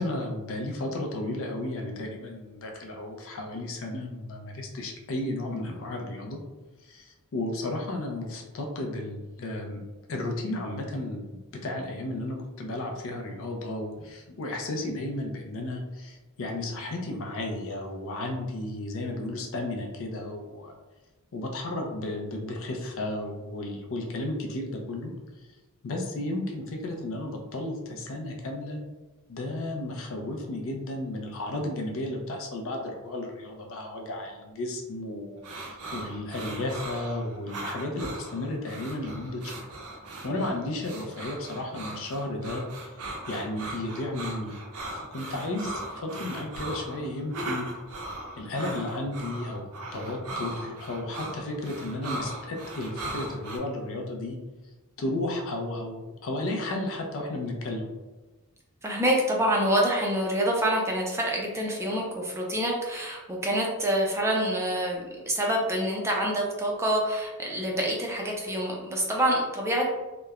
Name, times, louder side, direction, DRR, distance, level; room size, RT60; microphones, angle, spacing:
voice 1, 0.0-6.4 6.8-9.8 10.1-11.2 11.5-20.7 21.3-25.1 25.8-28.8 29.3-39.7 40.2-42.6 43.3-44.6 44.9-47.7 48.4-49.7 49.9-54.4 55.0-57.9, left 1 dB, 60° left, 2 dB, 0.5 m, -33 dB
sound 1, 35.4-53.6, right 2 dB, 70° right, 0.5 m, -38 dB
voice 2, 58.8-69.8, right 1 dB, 10° right, -1 dB, 0.4 m, -26 dB
3.0 x 2.1 x 2.3 m, 1.2 s
head